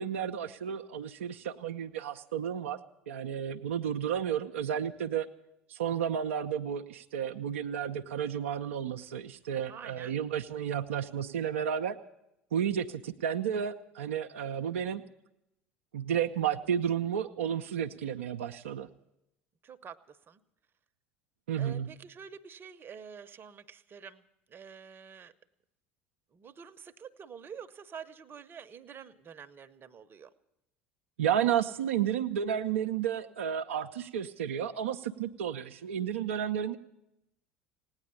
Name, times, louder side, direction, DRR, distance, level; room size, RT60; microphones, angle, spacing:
voice 1, 0.0-2.8 3.1-5.3 5.7-12.0 12.5-15.0 15.9-18.9 21.5-21.9 31.2-36.8, right 9 dB, 75° right, 4 dB, 0.5 m, -32 dB
voice 2, 9.7-10.1 19.6-20.4 21.6-25.3 26.3-30.3, right 7 dB, 35° right, 10 dB, 0.8 m, -48 dB
17.5 x 9.7 x 8.4 m, 0.85 s
figure-of-eight pair, 70°, 7 cm